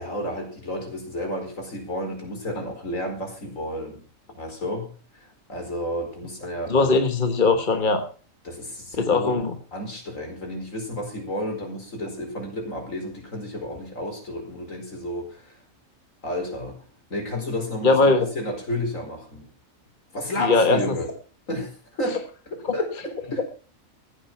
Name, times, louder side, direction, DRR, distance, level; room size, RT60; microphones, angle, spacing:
voice 1, 0.0-4.0 4.3-4.9 5.2-7.0 8.4-9.3 9.7-15.6 16.2-16.8 17.1-19.4 20.1-21.1 21.5-22.2 22.5-23.4, left 1 dB, 70° left, 2 dB, 5.1 m, -31 dB
voice 2, 6.7-8.0 9.0-9.5 17.8-18.3 20.4-20.8 22.6-22.7, left 3 dB, 40° left, 6 dB, 1.4 m, -20 dB
15.0 x 9.1 x 5.9 m, 0.40 s
omnidirectional pair, 1.4 m